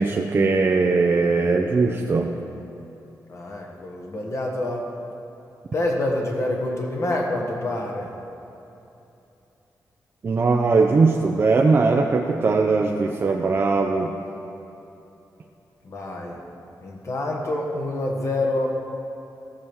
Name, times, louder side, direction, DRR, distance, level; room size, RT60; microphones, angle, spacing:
voice 1, 0.0-2.3 10.2-14.1, right 4 dB, 35° right, 1 dB, 0.6 m, -20 dB
voice 2, 3.3-4.8 5.7-8.1 15.8-16.4 16.8-18.8, left 1 dB, 45° left, 0 dB, 1.5 m, -27 dB
14.0 x 6.2 x 7.2 m, 2.9 s
wide cardioid pair, 175°, 7 cm